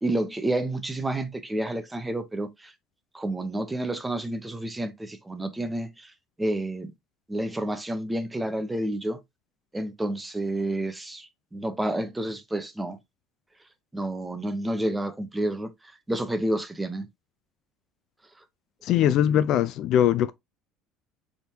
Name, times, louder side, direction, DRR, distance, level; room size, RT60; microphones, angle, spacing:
voice 1, 0.0-2.7 3.1-6.1 6.4-6.9 7.3-9.2 9.7-13.0 13.9-15.7 16.1-17.1, right 1 dB, 10° right, 0.8 m, -29 dB
voice 2, 18.8-20.3, left 10 dB, 55° left, 0.3 m, -21 dB
4.2 x 3.6 x 2.7 m
figure-of-eight pair, 65°, 0 cm